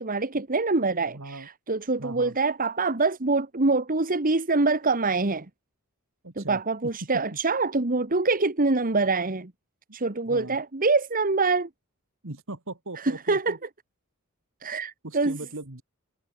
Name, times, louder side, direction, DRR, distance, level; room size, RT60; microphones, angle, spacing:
voice 1, 0.0-5.5 6.4-9.5 9.9-11.7 13.0-13.6 14.6-15.4, right 3 dB, 40° right, 1.5 m, -25 dB
voice 2, 1.1-1.5 2.0-2.3 6.2-6.6 10.3-10.6 12.2-13.6 15.0-15.8, right 2 dB, 65° right, 2.4 m, -38 dB
head